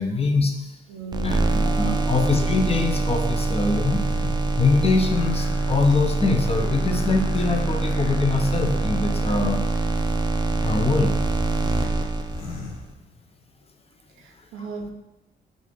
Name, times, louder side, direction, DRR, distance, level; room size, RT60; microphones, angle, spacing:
voice 1, 0.0-0.8 1.2-4.0 4.6-9.6 10.3-11.1, left 3 dB, 30° left, 4 dB, 0.6 m, -23 dB
voice 2, 0.9-2.2 14.1-14.9, right 2 dB, 85° right, 4 dB, 0.5 m, -37 dB
sound 1, 1.1-12.8, right 2 dB, 20° right, 0.4 m, -24 dB
sound 2, 3.7-13.4, left 3 dB, 85° left, 0.5 m, -40 dB
4.0 x 2.5 x 3.2 m, 0.97 s
supercardioid pair, 60°, 21 cm